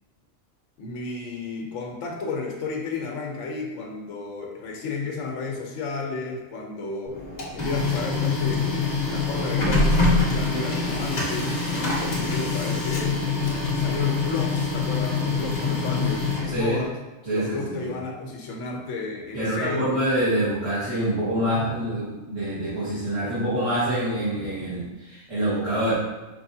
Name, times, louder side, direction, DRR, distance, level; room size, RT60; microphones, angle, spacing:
voice 1, 0.8-7.2 7.5-13.2 13.7-17.0 17.3-19.9, left 4 dB, 75° left, 0 dB, 1.0 m, -32 dB
Printer, 7.1-16.9, left 3 dB, 40° left, 0.8 m, -25 dB
voice 2, 16.5-16.8 17.2-17.9 19.3-25.9, right 1 dB, 25° right, -14 dB, 1.6 m, -26 dB
4.6 x 3.3 x 2.7 m, 1.1 s
omnidirectional pair, 1.4 m